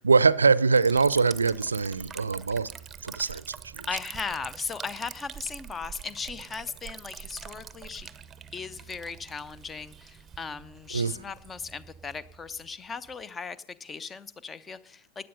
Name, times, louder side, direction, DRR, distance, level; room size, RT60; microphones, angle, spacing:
voice 1, 0.0-2.7 3.0-3.4 3.7-3.9 10.9-11.1, right 4 dB, 75° right, 0.5 m, -23 dB
Liquid, 0.8-13.2, right 7 dB, 20° right, 0.7 m, -45 dB
voice 2, 3.9-8.1 8.5-15.3, left 5 dB, 20° left, 0.6 m, -37 dB
16.0 x 10.0 x 5.4 m
figure-of-eight pair, 90°, 0 cm